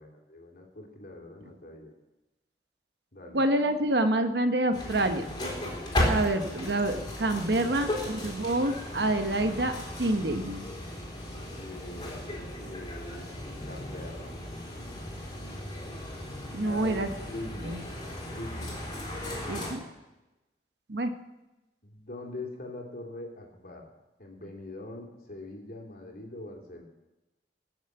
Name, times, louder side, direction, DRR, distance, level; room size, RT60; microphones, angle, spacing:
voice 1, 0.0-1.9 3.1-3.4 7.3-8.1 11.5-13.3 13.6-14.3 16.6-17.8 18.4-18.8 21.8-23.9 24.2-26.8, left 1 dB, 55° left, 0 dB, 2.9 m, -43 dB
voice 2, 3.3-5.3 6.1-9.7 10.0-10.7 16.5-17.1 17.7-17.8 19.5-19.8 20.9-21.1, right 1 dB, 70° right, 7 dB, 1.1 m, -27 dB
sound 1, 4.7-19.7, left 1 dB, 25° left, 3.9 m, -35 dB
18.5 x 7.2 x 7.8 m, 1.0 s
head